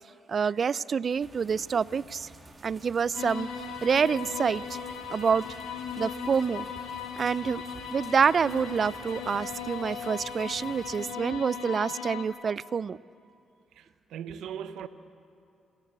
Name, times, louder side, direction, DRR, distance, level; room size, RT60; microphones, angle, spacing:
voice 1, 0.3-2.3 2.6-3.5 3.8-4.8 5.1-5.4 6.0-6.7 7.2-7.6 7.9-13.0, right 6 dB, 50° right, 21 dB, 0.4 m, -27 dB
sound 1, 1.2-11.1, right 2 dB, 30° right, 2.9 m, -51 dB
sound 2, 3.1-12.2, left 6 dB, 85° left, 1.4 m, -38 dB
voice 2, 13.7-14.9, right 8 dB, 80° right, 12 dB, 0.9 m, -39 dB
27.5 x 11.5 x 8.2 m, 2.5 s
supercardioid pair, 65°, 0 cm